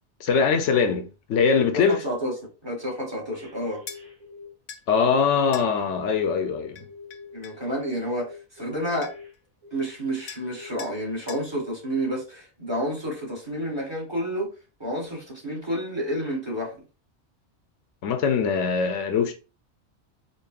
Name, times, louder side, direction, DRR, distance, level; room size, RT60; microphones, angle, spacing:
voice 1, 0.2-2.0 4.9-6.9 18.0-19.3, left 5 dB, 80° left, 0.9 m, -22 dB
voice 2, 1.9-2.3 2.6-3.8 7.3-9.1 9.7-14.5 14.8-16.7, equal, 25° right, 1.3 m, -30 dB
sound 1, 3.3-4.5 4.9-7.6 8.2-10.2 10.5-10.7, left 4 dB, 40° right, 1.6 m, -45 dB
sound 2, 3.9-4.0 4.7-4.9 5.5-5.7 6.8-7.6 8.7-8.8 9.0-9.4 10.3-10.5 10.8-11.0 11.3-11.5, left 7 dB, 60° left, 0.6 m, -41 dB
5.1 x 2.3 x 2.3 m
omnidirectional pair, 1.2 m